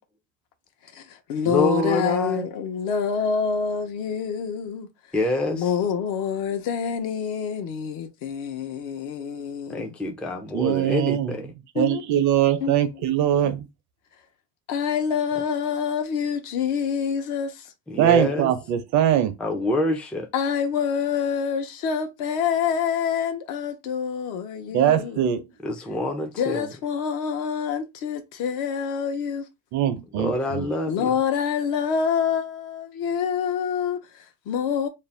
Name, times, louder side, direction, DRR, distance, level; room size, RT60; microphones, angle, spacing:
voice 1, 0.8-4.9 5.5-9.9 11.8-12.0 12.6-13.5 14.7-17.7 20.3-25.4 26.4-29.5 30.9-34.9, left 7 dB, 65° left, 0.8 m, -27 dB
voice 2, 1.4-2.5 5.1-5.6 9.7-11.5 17.9-18.5 19.4-20.3 25.6-26.7 30.2-31.1, left 1 dB, 5° left, 0.4 m, -26 dB
voice 3, 10.5-11.4 11.8-13.7 18.0-19.3 24.7-25.4 29.7-30.7, right 11 dB, 55° right, 0.7 m, -22 dB
2.6 x 2.0 x 3.2 m
supercardioid pair, 115°, 34 cm